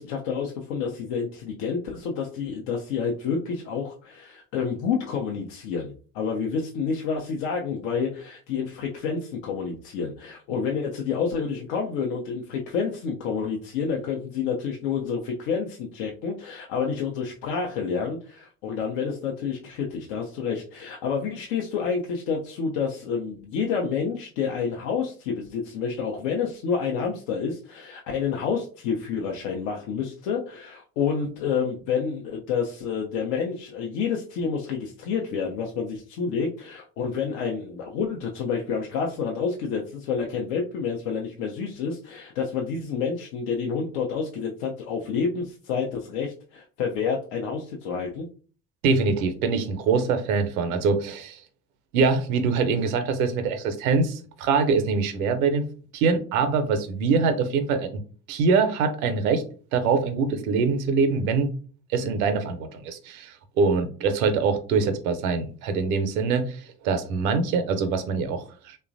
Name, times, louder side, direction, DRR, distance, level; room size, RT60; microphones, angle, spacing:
voice 1, 0.0-48.3, left 6 dB, 60° left, 0 dB, 0.6 m, -29 dB
voice 2, 48.8-51.4 51.9-55.6 55.9-57.9 58.3-59.4 59.7-61.5 61.9-68.8, right 4 dB, 65° right, 9 dB, 0.6 m, -24 dB
3.0 x 2.2 x 2.5 m, 0.39 s
figure-of-eight pair, 60°, 45 cm